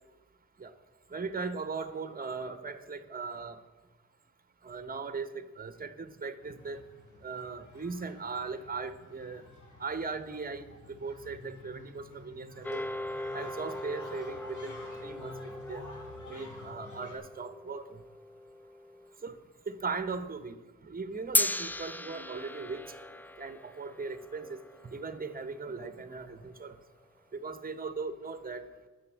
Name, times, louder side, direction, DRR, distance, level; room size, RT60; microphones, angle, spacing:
voice 1, 1.1-3.6 4.6-6.8 7.2-9.4 9.8-12.9 13.3-14.7 15.0-15.8 16.2-18.0 19.2-19.4 19.7-20.6 20.8-22.8 23.4-26.8 27.3-28.9, right 4 dB, 30° right, 12 dB, 0.9 m, -38 dB
sound 1, 6.4-17.1, left 1 dB, 85° left, 2.6 m, -50 dB
sound 2, 12.6-19.1 21.3-25.8, left 1 dB, 5° left, 0.3 m, -37 dB
10.5 x 7.0 x 8.3 m, 1.3 s
wide cardioid pair, 95°, 29 cm